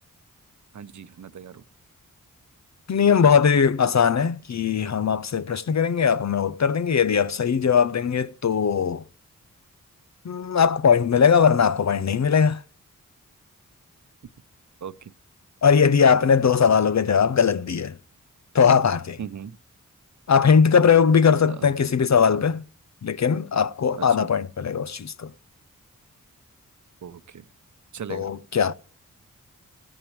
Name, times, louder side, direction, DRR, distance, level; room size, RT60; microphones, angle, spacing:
voice 1, 0.7-1.6 14.8-15.1 19.2-19.6 21.6-21.7 24.0-24.3 27.0-27.4 27.9-28.3, right 8 dB, 60° right, 0.8 m, -38 dB
voice 2, 2.9-9.0 10.2-12.6 15.6-17.9 18.5-19.2 20.3-22.6 23.0-25.3 28.1-28.7, left 6 dB, 55° left, 0.8 m, -20 dB
16.5 x 8.9 x 3.2 m
cardioid pair, 40°, 33 cm